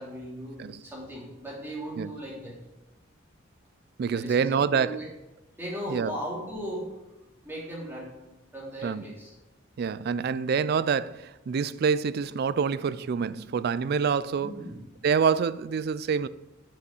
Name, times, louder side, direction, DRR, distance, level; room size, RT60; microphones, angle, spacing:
voice 1, 0.0-2.6 4.1-5.1 5.6-6.9 7.4-8.1 8.5-9.3 14.4-14.8, equal, 10° right, 2.6 m, -37 dB
voice 2, 4.0-4.9 5.9-6.1 8.8-9.0 9.8-14.5 15.0-16.3, right 6 dB, 55° right, 0.3 m, -26 dB
7.6 x 5.4 x 6.4 m
head